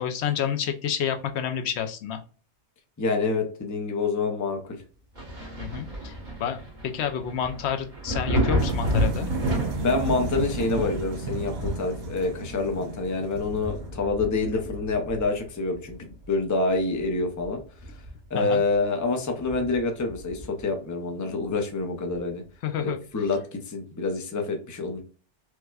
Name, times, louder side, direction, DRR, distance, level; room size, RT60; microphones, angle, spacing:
voice 1, 0.0-2.2 5.6-9.3 18.3-18.6 22.6-23.0, left 8 dB, 75° left, 7 dB, 0.9 m, -29 dB
voice 2, 3.0-4.8 9.8-17.6 18.3-22.4 22.8-25.0, left 3 dB, 20° left, 4 dB, 0.5 m, -27 dB
Thunder, 5.1-16.5 16.9-18.4 18.8-18.9 19.4-20.7 22.1-22.2, equal, 45° right, 1.5 m, -32 dB
sound 1, 8.6-13.9, right 2 dB, 65° right, 0.8 m, -34 dB
4.6 x 2.2 x 2.3 m, 0.39 s
omnidirectional pair, 1.1 m